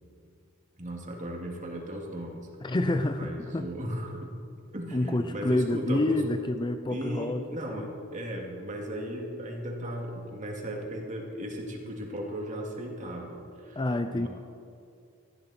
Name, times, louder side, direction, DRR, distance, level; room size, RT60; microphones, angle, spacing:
voice 1, 0.8-2.5 3.2-4.3 4.7-6.2 6.9-13.8 14.1-14.3, equal, 35° right, 0 dB, 2.4 m, -36 dB
voice 2, 2.6-3.7 4.9-7.4 7.7-7.9 13.8-14.3, left 2 dB, 20° left, 8 dB, 0.5 m, -28 dB
19.0 x 14.5 x 4.3 m, 2.5 s
head